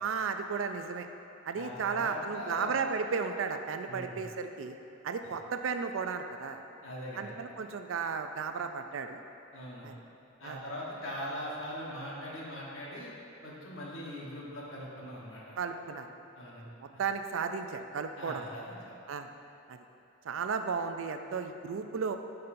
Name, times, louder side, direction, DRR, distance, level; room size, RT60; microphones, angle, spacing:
voice 1, 0.0-1.1 1.5-4.8 5.0-6.6 7.2-9.2 9.8-10.0 10.4-10.6 15.6-16.1 16.8-18.5 19.1-19.3 19.7-19.8 20.2-22.2, right 5 dB, 80° right, 7 dB, 0.4 m, -34 dB
voice 2, 1.5-2.7 3.9-4.3 6.8-7.4 9.5-9.9 10.4-13.1 13.4-15.5 16.3-16.6 18.2-18.8, equal, 80° left, -5 dB, 1.3 m, -41 dB
9.7 x 5.4 x 2.6 m, 2.8 s
head